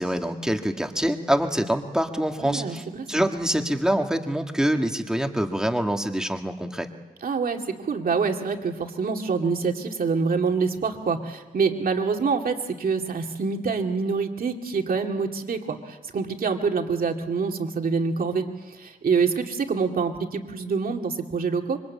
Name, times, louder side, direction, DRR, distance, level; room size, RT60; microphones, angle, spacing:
voice 1, 0.0-6.9, equal, 5° right, 4 dB, 1.7 m, -25 dB
voice 2, 2.4-3.3 7.2-21.8, right 5 dB, 70° right, 3 dB, 2.3 m, -26 dB
26.0 x 24.5 x 8.4 m, 1.2 s
wide cardioid pair, 150°, 16 cm